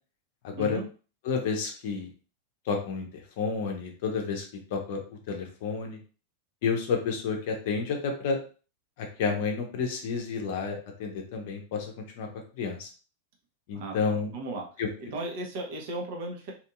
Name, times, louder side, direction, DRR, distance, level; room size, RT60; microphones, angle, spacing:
voice 1, 0.4-0.8 1.3-2.1 2.7-4.4 4.7-6.0 6.6-8.4 9.0-12.3 12.6-12.9 13.7-14.3 14.8-14.9, left 5 dB, 50° left, 3 dB, 0.7 m, -30 dB
voice 2, 13.7-14.7 15.0-16.5, right 2 dB, 50° right, 1 dB, 0.8 m, -36 dB
2.8 x 2.6 x 2.4 m, 0.36 s
figure-of-eight pair, 90°, 0 cm